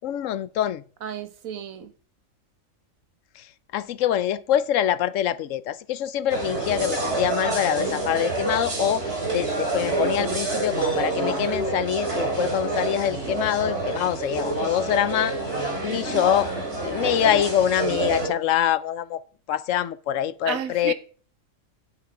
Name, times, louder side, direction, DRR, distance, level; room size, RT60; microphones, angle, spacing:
voice 1, 0.0-0.8 3.4-3.5 3.7-9.0 9.3-15.3 15.8-16.5 16.8-19.2 19.5-20.9, left 11 dB, 75° left, 1.0 m, -25 dB
voice 2, 1.0-1.9 13.6-13.7 20.4-20.9, right 8 dB, 85° right, 1.4 m, -32 dB
sound 1, 6.3-18.3, right 3 dB, 55° right, 2.8 m, -27 dB
9.4 x 8.0 x 4.9 m
omnidirectional pair, 1.4 m